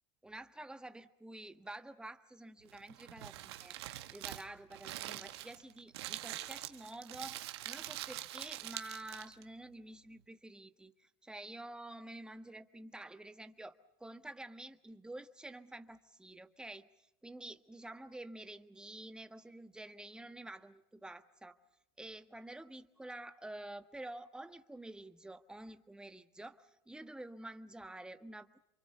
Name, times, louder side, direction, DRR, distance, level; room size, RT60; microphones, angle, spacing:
voice 1, 0.2-16.9 17.2-21.6 22.0-28.6, right 1 dB, 5° right, 8 dB, 1.5 m, -49 dB
Crumpling crinkling, 2.7-9.4, right 15 dB, 85° right, 1.5 m, -44 dB
28.5 x 24.5 x 6.8 m, 0.82 s
supercardioid pair, 110°, 13 cm